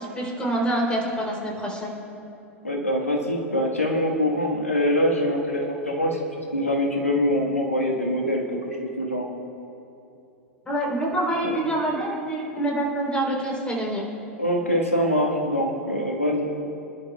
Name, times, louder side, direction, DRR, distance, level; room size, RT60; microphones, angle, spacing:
voice 1, 0.0-1.9 10.6-14.0, right 1 dB, 15° left, -2 dB, 3.2 m, -26 dB
voice 2, 2.6-6.2 6.5-9.3 11.5-11.6 14.4-16.4, equal, 85° left, 0 dB, 1.3 m, -24 dB
25.0 x 11.0 x 2.2 m, 2.8 s
figure-of-eight pair, 90°, 7 cm